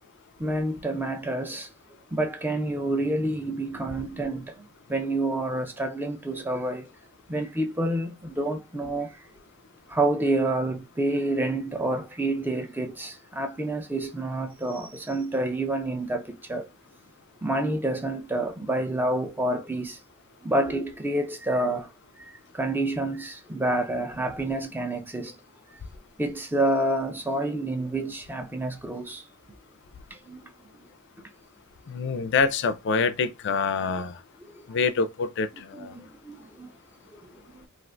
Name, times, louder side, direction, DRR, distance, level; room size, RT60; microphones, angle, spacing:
voice 1, 0.4-1.7 2.1-6.9 7.3-9.2 9.9-16.7 17.4-20.0 20.4-21.9 22.2-25.4 26.2-29.3 30.1-30.4 31.2-31.3 35.7-36.7 37.1-37.4, right 1 dB, 10° right, 0.4 m, -28 dB
voice 2, 31.9-34.2 34.7-35.9, left 5 dB, 55° left, 0.4 m, -26 dB
2.5 x 2.4 x 3.2 m
head